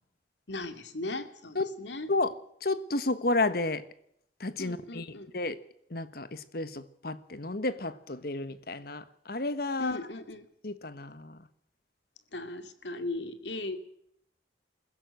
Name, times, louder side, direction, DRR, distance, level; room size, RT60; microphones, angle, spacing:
voice 1, 0.5-2.1 4.6-5.3 9.8-10.5 12.3-13.8, left 2 dB, 75° left, 2.5 m, -38 dB
voice 2, 2.6-3.8 4.4-5.6 5.9-10.0 10.6-11.5, left 2 dB, 55° left, 1.3 m, -32 dB
21.0 x 16.0 x 7.8 m
head